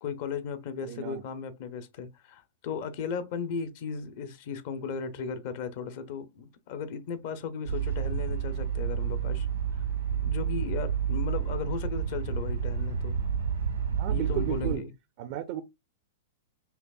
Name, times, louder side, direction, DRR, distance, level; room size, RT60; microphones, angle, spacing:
voice 1, 0.0-9.5 10.1-13.2 14.1-14.9, left 6 dB, 55° left, 0.7 m, -36 dB
voice 2, 0.8-1.2 14.0-14.8 15.2-15.6, right 11 dB, 50° right, 0.4 m, -34 dB
sound 1, 7.7-14.8, right 7 dB, 85° right, 1.2 m, -30 dB
5.6 x 2.0 x 2.3 m
hypercardioid pair, 115°, 0 cm